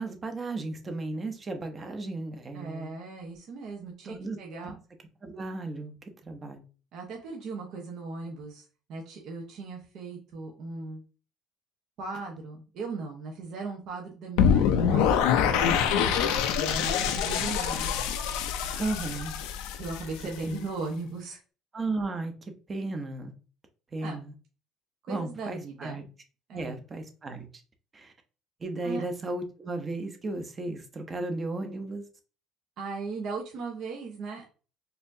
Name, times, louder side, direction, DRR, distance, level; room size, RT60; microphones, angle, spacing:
voice 1, 0.0-2.9 4.0-4.4 4.6-4.7 5.2-5.9 6.2-6.6 18.7-19.3 20.4-20.6 21.7-22.3 22.7-23.3 23.9-24.3 25.1-26.0 26.5-27.5 27.9-28.1 28.6-32.0, right 2 dB, 30° right, 0.8 m, -34 dB
voice 2, 2.5-4.8 6.9-11.0 12.0-18.0 19.8-21.4 24.0-24.2 25.1-26.1 26.5-26.8 28.8-29.0 32.8-34.4, right 3 dB, 60° right, 0.9 m, -38 dB
sound 1, 14.4-20.4, left 8 dB, 85° left, 0.5 m, -25 dB
4.2 x 2.7 x 2.6 m
cardioid pair, 105°, 0 cm